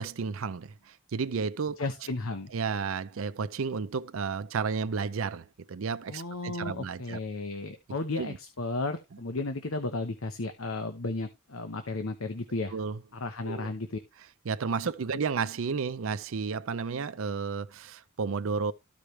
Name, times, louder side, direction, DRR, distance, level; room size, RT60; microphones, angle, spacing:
voice 1, 0.0-1.8 2.5-7.2 8.2-8.4 12.7-13.0 13.4-13.7 14.4-18.7, right 5 dB, 75° right, 0.5 m, -32 dB
voice 2, 1.8-2.5 6.1-12.7 13.1-14.0, left 2 dB, 85° left, 1.0 m, -34 dB
13.5 x 4.9 x 3.2 m
head